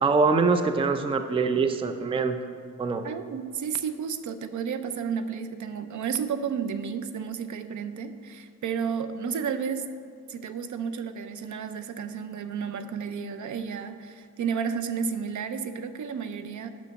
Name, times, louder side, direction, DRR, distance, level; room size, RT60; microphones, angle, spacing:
voice 1, 0.0-2.4 2.8-3.1, right 4 dB, 15° right, 8 dB, 0.4 m, -24 dB
voice 2, 3.0-9.8 10.3-16.7, right 6 dB, 60° right, 10 dB, 0.6 m, -32 dB
6.8 x 6.2 x 6.3 m, 2.2 s
cardioid pair, 115°, 34 cm